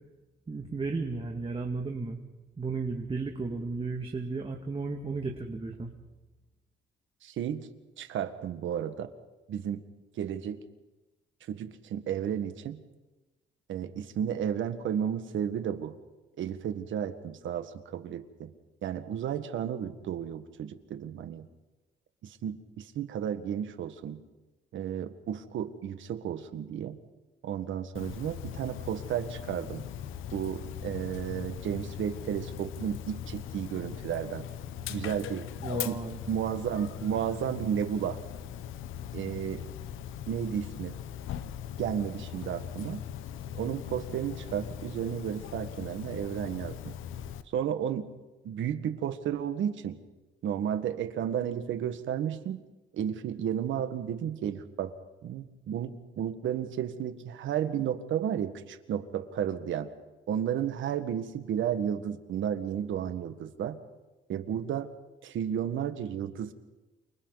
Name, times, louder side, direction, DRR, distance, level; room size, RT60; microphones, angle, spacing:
voice 1, 0.5-2.2 2.6-5.9 35.6-36.2, right 3 dB, 25° right, 1 dB, 2.3 m, -34 dB
voice 2, 7.2-7.7 8.0-9.1 9.5-9.8 10.2-10.6 11.5-12.8 13.7-16.0 16.4-18.5 18.8-21.5 22.2-24.2 24.7-27.0 27.4-29.9 30.3-34.5 34.9-35.5 35.9-36.0 36.3-38.2 39.1-39.6 40.3-41.0 41.8-43.1 43.5-47.0 47.5-48.1 48.4-50.0 50.4-52.6 52.9-55.0 55.2-59.9 60.3-63.8 64.3-64.9 65.2-66.5, right 9 dB, 75° right, 9 dB, 1.8 m, -33 dB
Dog, 27.9-47.4, left 10 dB, 90° left, 1.0 m, -40 dB
29.0 x 26.5 x 4.1 m, 1.1 s
cardioid pair, 90°, 20 cm